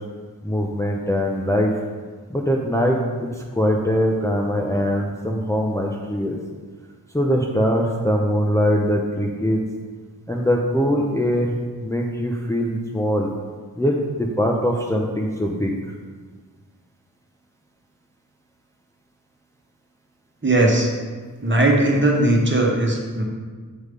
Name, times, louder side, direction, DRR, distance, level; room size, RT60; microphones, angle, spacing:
voice 1, 0.4-1.7 2.3-6.4 7.1-9.6 10.3-13.3 13.8-15.7, equal, 10° left, -1 dB, 0.8 m, -22 dB
voice 2, 20.4-20.9 21.4-23.2, right 1 dB, 30° right, -1 dB, 1.5 m, -18 dB
8.2 x 3.2 x 5.3 m, 1.5 s
cardioid pair, 40°, 39 cm